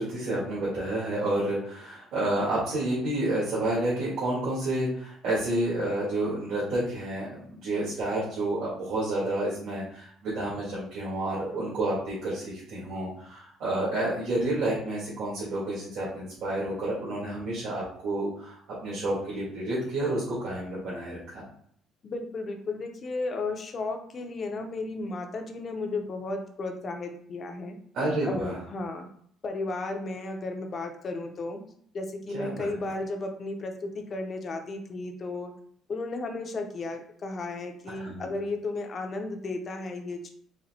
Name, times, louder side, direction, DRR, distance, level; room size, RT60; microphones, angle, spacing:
voice 1, 0.0-18.5 18.8-21.4 27.9-28.6 32.3-32.7 38.0-38.3, right 1 dB, 65° right, -8 dB, 1.6 m, -30 dB
voice 2, 22.0-27.8 28.2-29.1 29.4-31.6 31.9-35.5 35.9-40.3, left 2 dB, 30° left, 5 dB, 0.5 m, -34 dB
4.1 x 2.1 x 4.0 m, 0.63 s
cardioid pair, 165°, 0 cm